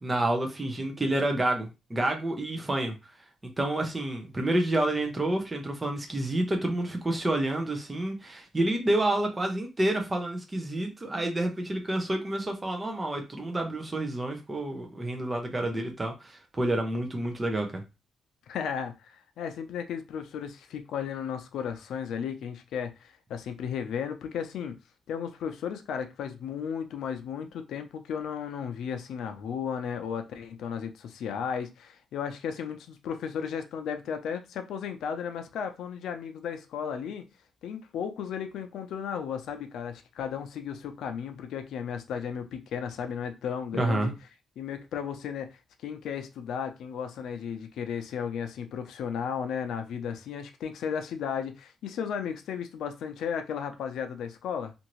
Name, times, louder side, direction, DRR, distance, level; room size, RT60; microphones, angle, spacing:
voice 1, 0.0-2.9 3.6-17.8 43.8-44.1, right 1 dB, 15° right, 0.6 m, -29 dB
voice 2, 18.5-24.7 25.1-37.2 37.6-44.1 44.6-54.7, left 7 dB, 90° left, 0.5 m, -34 dB
2.7 x 2.6 x 3.0 m
cardioid pair, 155°, 0 cm